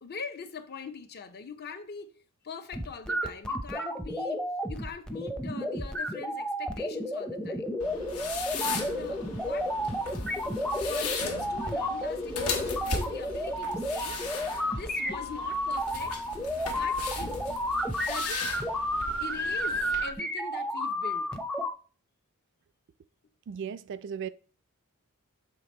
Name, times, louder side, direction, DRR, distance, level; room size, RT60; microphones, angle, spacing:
voice 1, 0.0-2.1 2.4-7.6 8.5-9.7 10.9-14.2 14.7-16.2 16.7-17.6 18.0-18.5 19.2-21.3, left 5 dB, 50° left, 0.6 m, -42 dB
sound 1, 2.7-21.7, equal, 5° left, 0.5 m, -32 dB
sound 2, 7.8-20.0, left 4 dB, 85° left, 1.3 m, -37 dB
voice 2, 23.5-24.3, right 7 dB, 55° right, 0.3 m, -36 dB
6.8 x 3.3 x 4.2 m
head